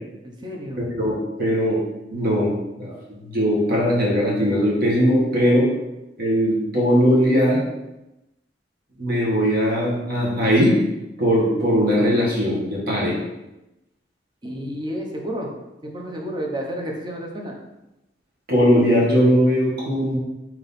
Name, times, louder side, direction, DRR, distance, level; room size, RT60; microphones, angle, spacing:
voice 1, 0.2-0.9 14.4-15.5 15.8-17.5, equal, 25° right, 0 dB, 0.7 m, -31 dB
voice 2, 1.0-1.8 2.1-2.9 3.2-5.7 6.2-7.6 9.0-10.7 11.2-13.2 18.5-20.2, equal, 60° right, -5 dB, 1.3 m, -19 dB
3.5 x 2.8 x 4.1 m, 0.95 s
head